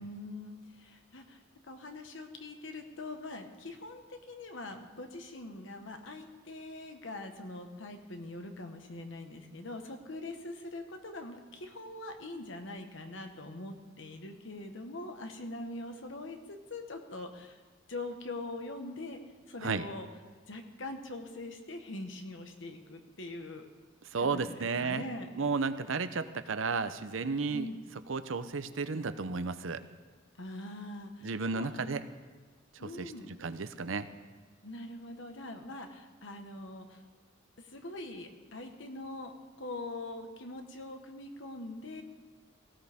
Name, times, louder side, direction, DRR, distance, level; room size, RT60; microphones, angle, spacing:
voice 1, 0.0-17.6 17.9-19.2 19.5-20.1 20.5-23.7 24.3-25.3 27.5-27.8 30.4-31.8 32.8-33.3 34.6-37.0 37.6-39.3 39.6-42.0, left 2 dB, 65° left, 5 dB, 1.4 m, -43 dB
voice 2, 24.1-25.0 25.4-27.7 28.1-29.8 31.2-32.0 32.7-33.1 33.4-34.1, right 4 dB, 75° right, 11 dB, 0.7 m, -33 dB
17.5 x 16.0 x 3.6 m, 1.4 s
head